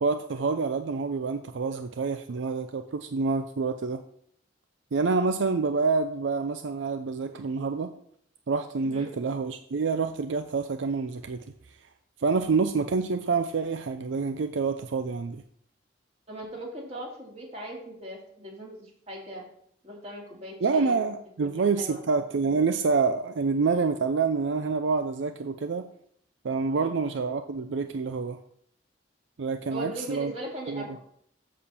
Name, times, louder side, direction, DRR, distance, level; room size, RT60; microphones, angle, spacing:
voice 1, 0.0-4.0 4.9-7.9 8.5-11.4 12.2-15.4 20.6-25.8 26.4-28.4 29.4-30.3 30.7-30.9, right 4 dB, 80° right, 8 dB, 0.5 m, -27 dB
voice 2, 16.3-19.4 19.8-21.0 21.4-21.5 21.8-22.0 26.8-26.9 29.7-31.0, equal, 35° right, -2 dB, 2.5 m, -39 dB
7.4 x 4.3 x 6.9 m, 0.67 s
head